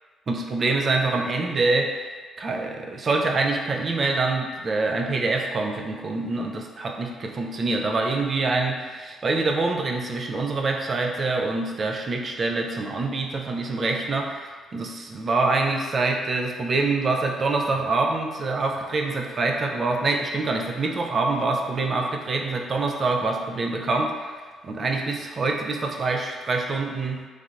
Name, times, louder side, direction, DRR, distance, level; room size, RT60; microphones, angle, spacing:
voice 1, 0.3-2.1 2.4-24.3 24.6-27.3, right 3 dB, 45° right, 2 dB, 0.4 m, -25 dB
3.2 x 2.8 x 2.4 m, 1.5 s
hypercardioid pair, 45°, 0 cm